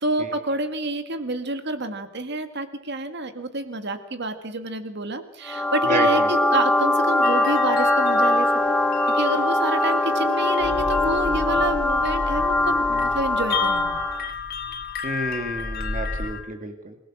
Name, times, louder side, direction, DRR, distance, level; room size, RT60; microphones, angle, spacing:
voice 1, 0.0-8.8 9.1-14.0, right 2 dB, 60° right, 8 dB, 1.9 m, -28 dB
sound 1, 5.5-14.3, left 2 dB, 5° left, 0.7 m, -22 dB
voice 2, 5.8-6.3 15.0-17.0, right 2 dB, 40° right, 6 dB, 2.1 m, -30 dB
sound 2, 7.2-16.4, left 7 dB, 50° left, 3.9 m, -34 dB
sound 3, 10.6-16.3, equal, 80° left, 2.4 m, -35 dB
28.0 x 17.0 x 6.3 m, 0.78 s
head